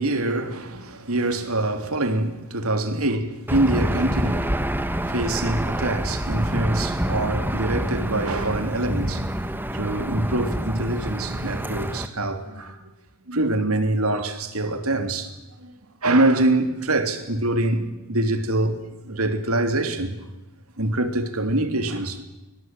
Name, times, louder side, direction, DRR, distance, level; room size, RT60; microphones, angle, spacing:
voice 1, 0.0-9.3 9.7-12.8 13.3-15.7 16.0-20.2 20.8-22.2, right 2 dB, 70° right, 3.2 m, -25 dB
Aircraft / Engine, 3.5-12.1, right 1 dB, 10° right, 1.5 m, -27 dB
25.0 x 24.0 x 9.1 m
head